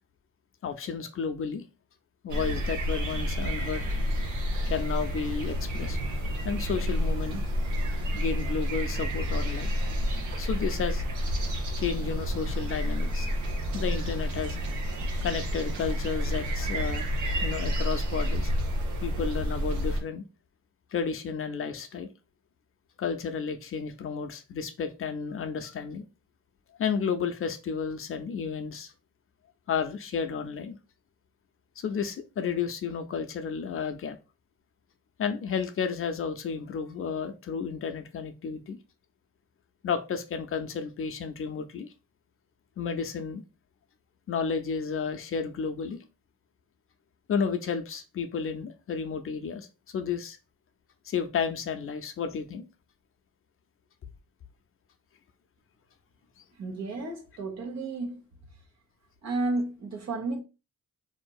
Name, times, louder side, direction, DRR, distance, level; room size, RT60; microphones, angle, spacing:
voice 1, 0.6-1.6 2.2-3.9 4.7-6.0 6.4-7.4 8.1-9.7 10.4-11.0 11.8-13.3 13.7-14.6 15.2-17.1 17.4-18.5 19.0-20.2 20.9-22.1 23.0-26.0 26.8-28.9 29.7-30.8 31.8-34.2 35.2-38.8 39.8-41.9 42.8-43.4 44.3-46.0 47.3-49.7 49.9-50.4 51.1-52.6, left 6 dB, 45° left, 0.5 m, -32 dB
sound 1, 2.3-20.0, equal, 85° right, 1.0 m, -29 dB
voice 2, 56.5-58.2 59.2-60.4, right 2 dB, 60° right, 1.1 m, -32 dB
3.7 x 2.7 x 2.3 m
cardioid pair, 90°, 30 cm